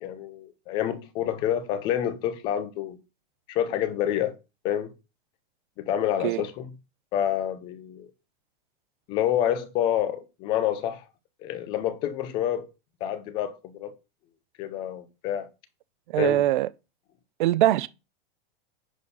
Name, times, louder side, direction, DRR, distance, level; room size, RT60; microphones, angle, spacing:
voice 1, 0.0-3.0 3.5-4.3 4.6-4.9 5.8-6.7 7.1-8.1 9.1-11.0 11.4-12.7 13.0-13.9 14.6-15.5 16.2-16.4, left 11 dB, 15° left, 0.4 m, -28 dB
voice 2, 16.1-16.7 17.4-17.9, right 14 dB, 50° right, 0.6 m, -22 dB
10.0 x 4.2 x 5.4 m
supercardioid pair, 175°, 32 cm